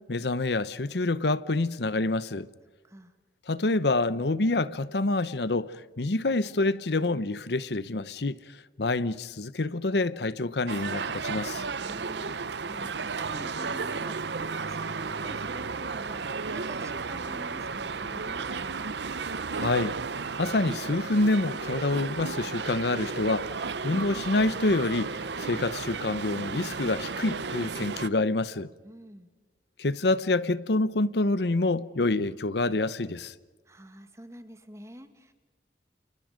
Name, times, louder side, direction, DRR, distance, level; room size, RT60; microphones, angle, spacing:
voice 1, 0.0-2.5 3.5-11.6 19.5-20.0 20.4-28.7 29.8-33.3, left 2 dB, 75° left, 0.9 m, -27 dB
sound 1, 10.7-28.1, right 4 dB, 80° right, 0.8 m, -33 dB
voice 2, 11.8-18.9 28.8-29.3 33.7-35.3, equal, 15° right, 2.1 m, -47 dB
29.5 x 29.0 x 5.2 m
head